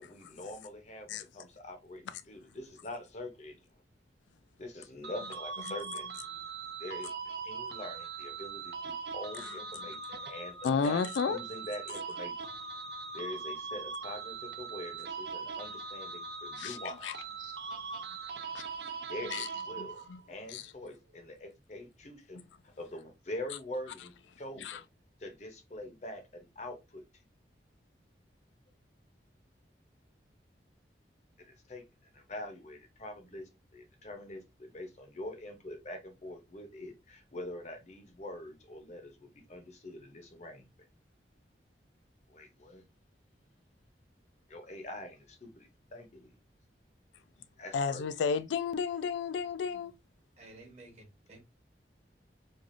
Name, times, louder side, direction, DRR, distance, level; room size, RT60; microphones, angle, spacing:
voice 1, 0.0-3.6 4.6-6.1 6.8-12.3 13.1-17.0 19.1-20.0 20.3-24.9 25.2-27.0 31.4-31.8 32.1-40.7 42.3-42.8 44.5-46.3 47.6-48.1, left 1 dB, 40° left, 0.6 m, -44 dB
sound 1, 5.0-20.3, right 5 dB, 65° right, 0.5 m, -41 dB
voice 2, 10.6-11.4 16.6-16.8 17.0-17.1 17.4-17.5 18.5-18.6 19.3-19.5 19.8-20.2 20.5-20.6 24.6-24.8 47.7-49.9, left 5 dB, 85° left, 0.3 m, -32 dB
voice 3, 50.4-51.4, right 2 dB, 35° right, 1.0 m, -53 dB
3.2 x 2.4 x 2.5 m
head